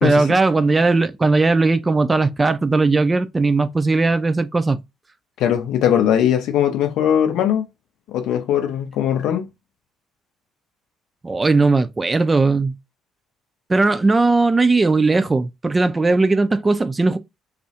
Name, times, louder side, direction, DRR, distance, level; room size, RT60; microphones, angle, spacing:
voice 1, 0.0-4.8 11.2-12.8 13.7-17.2, right 3 dB, 20° right, 0.3 m, -18 dB
voice 2, 5.4-7.6 8.1-9.5, left 9 dB, 60° left, 0.5 m, -19 dB
2.3 x 2.0 x 2.7 m
figure-of-eight pair, 50°, 0 cm